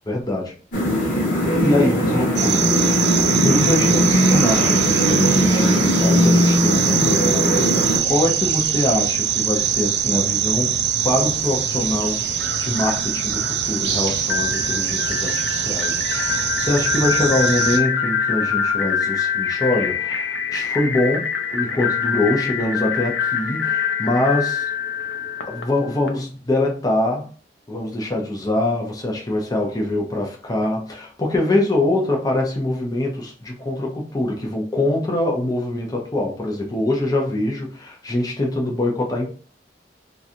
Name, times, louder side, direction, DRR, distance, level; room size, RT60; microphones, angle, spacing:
voice 1, 0.1-0.5 1.6-10.8 11.0-12.2 12.6-24.7 25.5-27.3 27.7-39.3, left 1 dB, 20° left, 0.7 m, -24 dB
sound 1, 0.7-8.0, equal, 50° left, 1.3 m, -19 dB
sound 2, 2.4-17.8, right 8 dB, 65° right, 0.5 m, -23 dB
sound 3, 14.2-26.1, left 7 dB, 85° left, 0.6 m, -24 dB
3.1 x 2.4 x 2.6 m
head